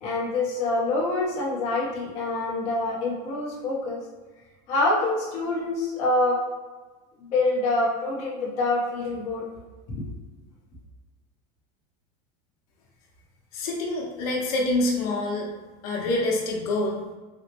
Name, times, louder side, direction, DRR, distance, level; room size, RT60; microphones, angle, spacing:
voice 1, 0.0-4.0 4.7-6.4 7.2-9.4 10.0-10.1, left 2 dB, 35° left, -6 dB, 0.7 m, -26 dB
voice 2, 13.5-15.5 15.8-17.2, left 2 dB, 75° left, -2 dB, 0.8 m, -26 dB
4.2 x 2.0 x 2.9 m, 1.3 s
supercardioid pair, 175°, 19 cm